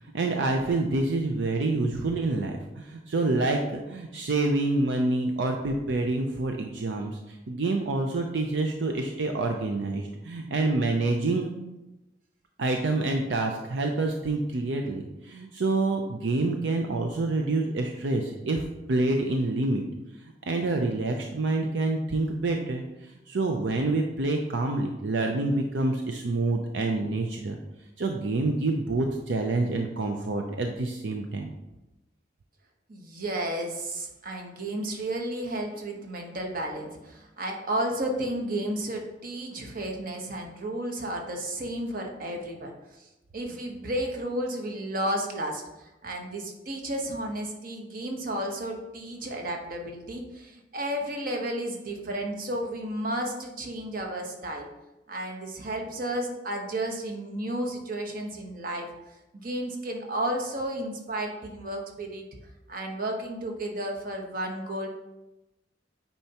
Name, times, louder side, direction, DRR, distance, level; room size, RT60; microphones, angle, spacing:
voice 1, 0.1-11.5 12.6-18.6 18.9-19.8 20.5-27.6 28.0-31.5, right 2 dB, 80° right, 3 dB, 0.6 m, -27 dB
voice 2, 32.9-43.0 43.3-54.7 55.1-58.9 59.3-62.2 62.7-64.9, right 1 dB, 50° right, 2 dB, 1.1 m, -32 dB
8.9 x 4.4 x 2.9 m, 0.98 s
head